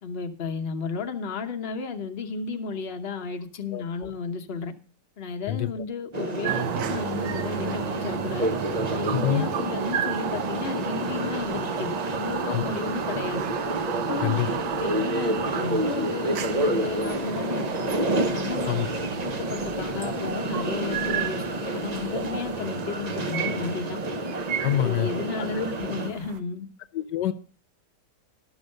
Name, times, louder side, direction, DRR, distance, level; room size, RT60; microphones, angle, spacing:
voice 1, 0.0-4.7 5.2-8.5 8.9-13.5 14.1-17.9 18.3-18.7 19.2-24.0 24.7-26.7, left 5 dB, 40° left, 5 dB, 1.1 m, -33 dB
voice 2, 3.7-4.1 5.5-5.7 9.1-9.5 12.5-12.6 14.2-14.5 18.7-19.0 24.6-25.1 25.4-25.7 26.9-27.3, left 12 dB, 80° left, 10 dB, 1.3 m, -26 dB
sound 1, 6.1-26.1, right 1 dB, 35° right, 0.7 m, -29 dB
sound 2, 6.4-26.4, right 9 dB, 65° right, 1.2 m, -34 dB
12.0 x 6.3 x 6.4 m, 0.39 s
omnidirectional pair, 1.9 m